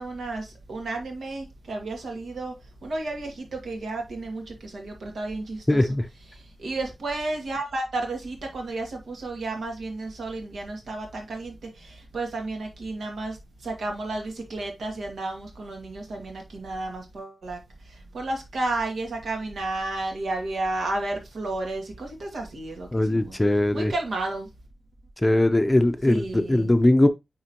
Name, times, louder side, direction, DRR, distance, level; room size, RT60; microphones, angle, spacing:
voice 1, 0.0-2.5 2.8-5.9 6.3-13.4 13.6-17.6 17.9-23.4 23.7-24.5 26.1-26.7, right 2 dB, 80° right, 2.2 m, -32 dB
voice 2, 5.7-6.0 22.9-23.9 25.2-27.1, left 1 dB, 15° left, 0.6 m, -20 dB
9.5 x 3.8 x 2.9 m
wide cardioid pair, 130°, 0 cm